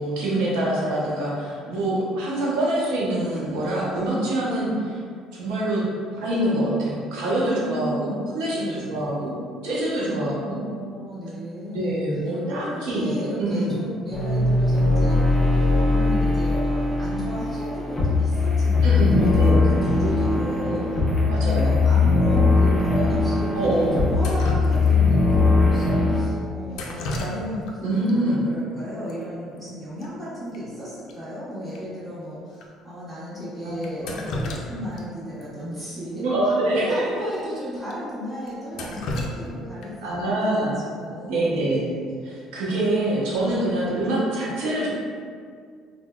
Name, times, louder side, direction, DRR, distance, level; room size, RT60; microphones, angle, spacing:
voice 1, 0.0-5.0 5.3-5.8 6.2-8.1 8.3-9.3 9.6-10.6 11.7-13.1 13.4-13.7 18.8-19.7 21.3-21.8 23.5-24.0 27.8-28.4 33.6-33.7 34.0-34.2 36.2-37.1 40.0-40.7 41.2-41.8 42.2-44.9, right 1 dB, 90° right, -6 dB, 0.8 m, -25 dB
voice 2, 7.5-8.2 8.5-9.0 10.1-12.0 12.4-36.3 36.6-42.0, equal, 15° right, -11 dB, 1.3 m, -34 dB
sound 1, 14.1-26.2, left 3 dB, 20° left, 0.9 m, -20 dB
Drip, 24.2-25.2 26.7-27.8 28.1-28.2 29.1-29.2 29.4-29.7 30.0-30.1 30.5-30.6 31.1-31.2 31.7-31.8 32.5-32.7 33.8-35.0 35.4-35.5 36.8-36.9 37.3-37.4 37.9-38.0 38.5-40.1 42.1-42.4 42.8-43.2, left 1 dB, 70° left, 0.4 m, -33 dB
3.5 x 2.1 x 2.3 m, 2.1 s
cardioid pair, 115°, 0 cm